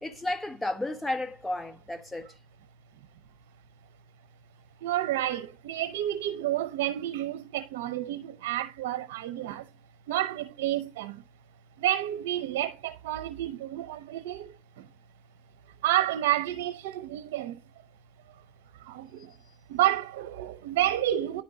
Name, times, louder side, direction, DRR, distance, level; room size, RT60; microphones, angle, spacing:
voice 1, 0.0-2.4, left 1 dB, 10° left, 1.5 m, -33 dB
voice 2, 4.8-9.7 10.1-11.2 11.8-14.9 15.8-17.6 18.8-19.3 19.7-21.4, right 13 dB, 90° right, 0.7 m, -30 dB
10.5 x 5.1 x 3.9 m
supercardioid pair, 110°, 0 cm